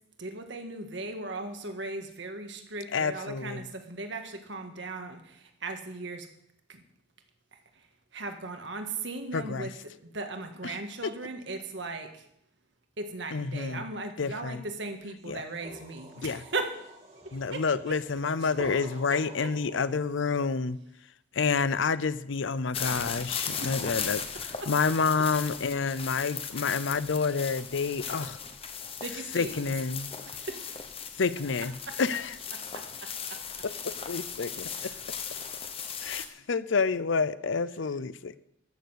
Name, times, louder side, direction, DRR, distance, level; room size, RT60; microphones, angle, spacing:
voice 1, 0.2-6.3 6.7-6.8 7.5-7.8 8.1-12.2 13.0-16.8 17.2-17.9 18.4-18.5 18.8-19.8 23.6-23.9 24.6-24.7 29.0-29.7 30.2-30.8 31.9-32.0 32.5-33.4 34.5-35.0, right 3 dB, 65° right, 6 dB, 1.7 m, -38 dB
voice 2, 2.9-3.6 9.3-9.7 10.6-10.8 13.3-13.8 14.2-14.6 15.3-15.4 16.2-16.4 17.3-20.8 21.3-24.2 24.7-28.4 29.3-30.1 31.2-31.7 32.0-32.3 33.6-34.9 36.0-38.4, left 5 dB, 70° left, 16 dB, 0.6 m, -29 dB
sound 1, 15.2-20.2, right 1 dB, 35° right, 2.4 m, -47 dB
sound 2, 22.7-36.3, left 7 dB, 30° left, 1.0 m, -37 dB
13.5 x 6.9 x 8.1 m, 0.75 s
head